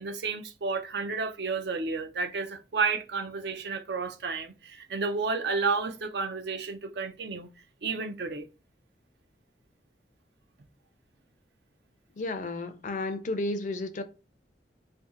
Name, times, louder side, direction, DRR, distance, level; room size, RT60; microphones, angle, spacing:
voice 1, 0.0-7.5 7.8-8.5, right 4 dB, 65° right, 0.5 m, -31 dB
voice 2, 12.2-14.0, left 2 dB, 45° left, 0.4 m, -32 dB
2.6 x 2.3 x 3.7 m
head